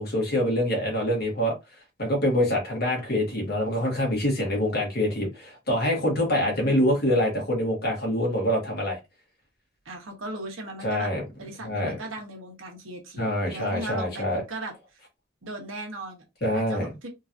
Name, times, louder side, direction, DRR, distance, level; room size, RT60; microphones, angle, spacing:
voice 1, 0.0-1.5 2.0-9.0 10.8-11.2 11.6-12.0 13.2-14.4 16.4-16.9, left 1 dB, 50° left, 1.6 m, -25 dB
voice 2, 6.2-6.9 9.8-11.1 11.4-14.7 15.4-16.2 16.5-17.1, right 1 dB, 80° right, 1.3 m, -38 dB
3.8 x 3.0 x 2.6 m
head